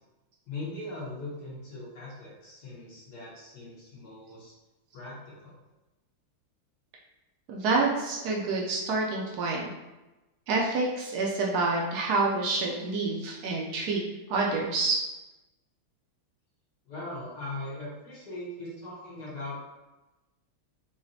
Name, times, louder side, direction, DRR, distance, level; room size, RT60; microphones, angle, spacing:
voice 1, 0.5-4.5 4.9-5.5 16.8-19.6, left 2 dB, 55° left, -7 dB, 1.4 m, -40 dB
voice 2, 7.5-9.7 10.5-14.0 14.3-15.0, right 3 dB, 85° right, -2 dB, 0.8 m, -27 dB
5.0 x 2.3 x 2.7 m, 1.1 s
omnidirectional pair, 2.4 m